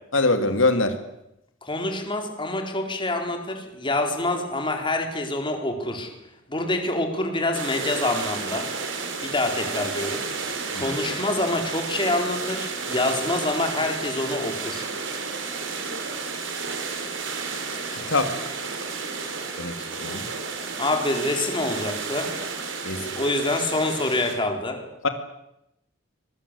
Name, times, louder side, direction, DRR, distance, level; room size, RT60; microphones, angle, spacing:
voice 1, 0.1-1.0 10.7-10.9 17.9-18.3 19.6-20.2 22.8-23.2 25.0-25.1, left 3 dB, 90° left, 8 dB, 2.6 m, -24 dB
voice 2, 1.6-6.1 6.5-8.6 9.2-10.2 10.5-14.9 20.8-22.3 23.2-24.8, left 2 dB, 25° left, 4 dB, 4.5 m, -26 dB
sound 1, 7.5-24.3, right 4 dB, 70° right, 4.9 m, -32 dB
24.5 x 22.0 x 8.5 m, 0.84 s
head